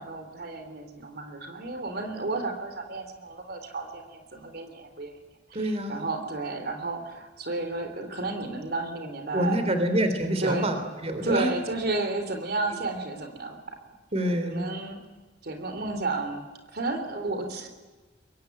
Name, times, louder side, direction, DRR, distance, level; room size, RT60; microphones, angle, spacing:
voice 1, 0.0-5.1 5.9-9.8 10.4-10.7 11.2-13.6 14.3-15.0 15.4-16.4 16.7-17.7, right 3 dB, 60° right, 6 dB, 3.3 m, -32 dB
voice 2, 5.5-6.1 9.3-11.5 14.1-14.7, right 1 dB, 35° right, 7 dB, 3.3 m, -27 dB
25.0 x 22.5 x 9.4 m, 1.3 s
head